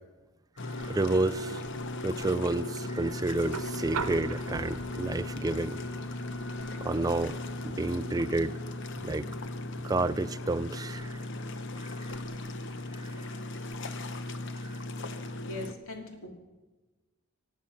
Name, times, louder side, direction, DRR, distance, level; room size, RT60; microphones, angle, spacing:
sound 1, 0.6-15.7, left 2 dB, 55° left, 0.9 m, -37 dB
voice 1, 0.6-1.6 2.0-5.8 6.8-7.4 7.6-8.6 9.0-9.3 9.8-11.2 11.8-12.1 13.0-13.1 14.6-14.8, right 2 dB, 15° right, 0.4 m, -30 dB
sound 2, 3.4-11.5 12.9-13.0, right 4 dB, 90° right, 1.0 m, -43 dB
voice 2, 15.4-16.3, left 2 dB, 70° left, 2.6 m, -40 dB
24.0 x 8.8 x 5.8 m
head